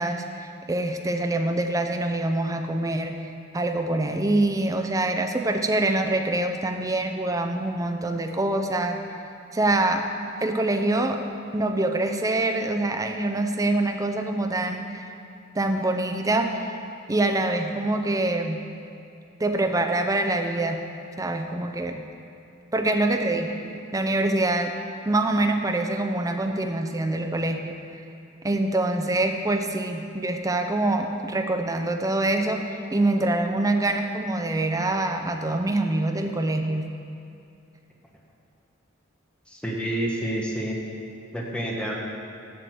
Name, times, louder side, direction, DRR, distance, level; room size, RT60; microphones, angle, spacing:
voice 1, 0.0-3.2 3.5-9.0 9.5-10.0 10.4-11.2 11.5-15.1 15.5-16.5 17.1-18.6 19.4-20.8 21.2-22.0 22.7-24.7 25.1-27.7 28.4-36.9, right 2 dB, 15° right, 4 dB, 0.6 m, -25 dB
voice 2, 39.5-40.8 41.3-41.9, right 1 dB, 5° left, -2 dB, 1.1 m, -28 dB
7.6 x 6.8 x 7.8 m, 2.6 s
head